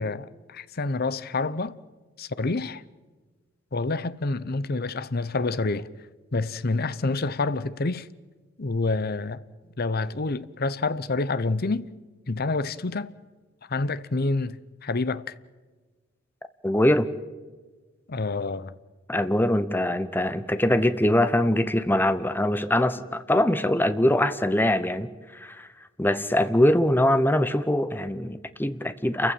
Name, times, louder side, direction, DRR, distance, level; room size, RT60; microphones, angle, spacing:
voice 1, 0.0-1.8 2.2-2.8 3.7-5.9 6.3-8.1 8.6-9.4 9.8-11.9 12.3-13.1 13.7-14.6 14.8-15.3 18.1-18.7, left 3 dB, 50° left, 0.8 m, -27 dB
voice 2, 16.6-17.1 19.1-25.7 26.0-29.3, left 1 dB, 10° left, 0.9 m, -23 dB
28.5 x 15.0 x 9.1 m
head